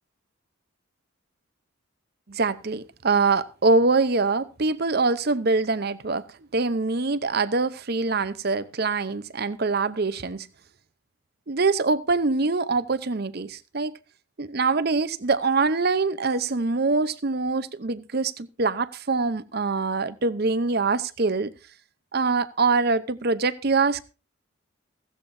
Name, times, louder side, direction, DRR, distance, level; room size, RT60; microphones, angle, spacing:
voice 1, 2.3-10.5 11.5-14.0 14.4-21.5 22.1-24.0, right 3 dB, 50° right, 0.7 m, -24 dB
15.5 x 15.5 x 2.7 m
head